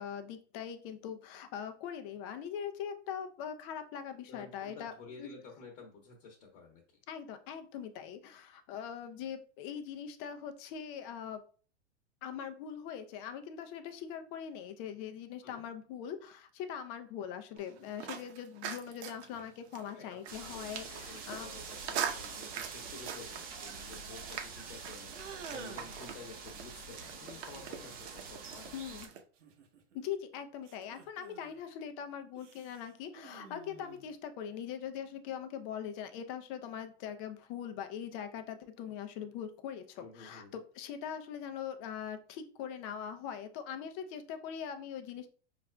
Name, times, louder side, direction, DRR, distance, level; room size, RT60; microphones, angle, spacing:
voice 1, 0.0-5.3 7.1-11.4 12.2-21.5 28.7-29.1 29.9-45.3, left 8 dB, 35° left, 8 dB, 0.5 m, -42 dB
voice 2, 4.3-7.0 15.4-15.6 19.3-19.4 19.9-20.1 20.4-28.8 40.0-40.6, left 4 dB, 55° left, -1 dB, 1.1 m, -51 dB
sound 1, 17.6-29.2, right 8 dB, 65° right, 0.8 m, -43 dB
sound 2, 20.3-29.1, right 5 dB, 25° right, 0.7 m, -46 dB
sound 3, 25.1-26.1 27.5-28.1 29.4-30.1 30.6-31.6 32.3-34.1, right 6 dB, 90° right, 0.9 m, -50 dB
5.6 x 2.5 x 2.2 m, 0.41 s
hypercardioid pair, 115°, 36 cm